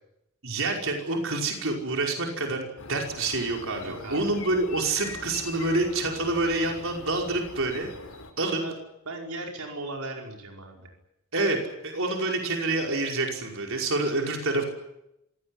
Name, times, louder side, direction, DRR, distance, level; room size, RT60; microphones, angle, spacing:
voice 1, 0.4-7.9 8.4-8.6 11.3-14.6, right 2 dB, 65° right, 1 dB, 5.4 m, -27 dB
sound 1, 2.8-8.3, left 3 dB, 75° left, 5.1 m, -42 dB
voice 2, 3.8-4.4 8.6-8.7 9.0-10.9, right 2 dB, 85° right, 1 dB, 5.1 m, -37 dB
26.5 x 17.5 x 9.9 m, 0.86 s
head